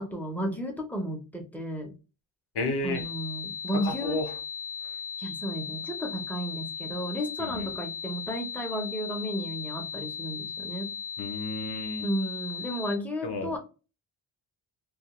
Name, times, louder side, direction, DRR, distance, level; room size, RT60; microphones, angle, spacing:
voice 1, 0.0-1.9 2.8-4.2 5.2-10.9 12.0-13.6, equal, 5° left, 0.5 m, -33 dB
voice 2, 2.5-3.1 3.7-4.3 7.4-7.7 11.2-12.1 13.2-13.6, left 2 dB, 55° left, 0.7 m, -32 dB
sound 1, 2.9-12.9, left 7 dB, 70° right, 1.1 m, -37 dB
2.3 x 2.1 x 2.9 m
wide cardioid pair, 155°, 50 cm